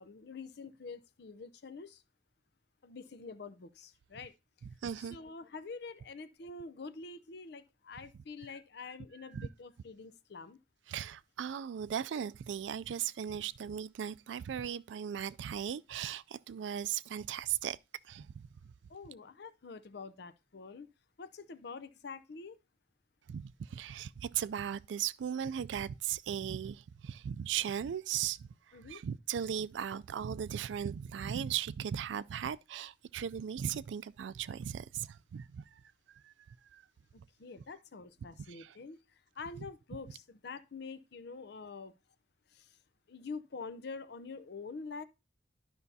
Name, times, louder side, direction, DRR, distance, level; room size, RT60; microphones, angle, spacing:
voice 1, 0.0-2.0 2.8-4.3 5.0-10.6 18.9-20.9 21.2-22.6 28.7-29.0 37.4-39.0 39.4-41.9 42.5-42.8 43.1-45.0, left 4 dB, 65° left, 0.6 m, -46 dB
voice 2, 4.8-5.2 9.3-9.5 10.9-17.8 18.1-18.5 23.3-28.5 28.9-35.6 36.2-36.3 36.7-36.8 38.5-38.7, right 9 dB, 85° right, 0.3 m, -37 dB
12.0 x 5.5 x 2.7 m
head